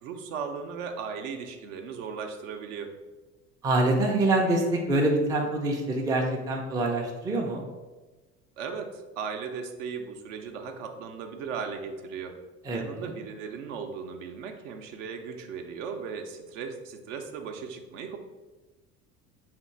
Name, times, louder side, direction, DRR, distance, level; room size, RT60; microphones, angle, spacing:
voice 1, 0.0-2.9 8.6-12.3 12.7-18.2, right 6 dB, 55° right, 5 dB, 0.6 m, -37 dB
voice 2, 3.6-4.6 4.9-7.6 12.7-13.1, right 2 dB, 10° right, 0 dB, 0.4 m, -25 dB
3.6 x 2.5 x 4.2 m, 1.2 s
figure-of-eight pair, 60°, 44 cm